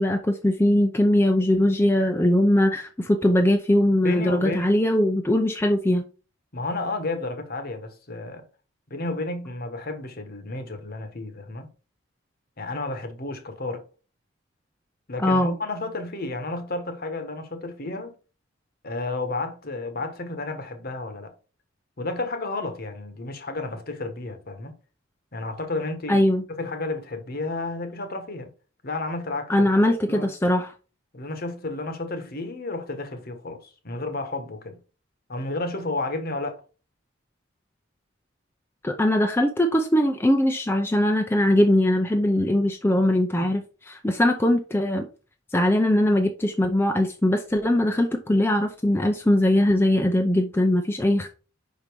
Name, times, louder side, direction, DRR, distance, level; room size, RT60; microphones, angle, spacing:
voice 1, 0.0-6.0 15.2-15.6 26.1-26.4 29.5-30.7 38.8-45.1 45.5-51.3, left 1 dB, 10° left, 0.5 m, -21 dB
voice 2, 4.0-4.7 6.5-8.4 8.9-11.7 12.6-13.8 15.1-18.1 18.8-21.3 22.0-24.7 25.3-26.2 26.6-28.5 28.8-29.7 30.1-30.3 31.1-34.8 35.3-36.6, left 2 dB, 45° left, 1.1 m, -32 dB
5.5 x 5.2 x 4.6 m
head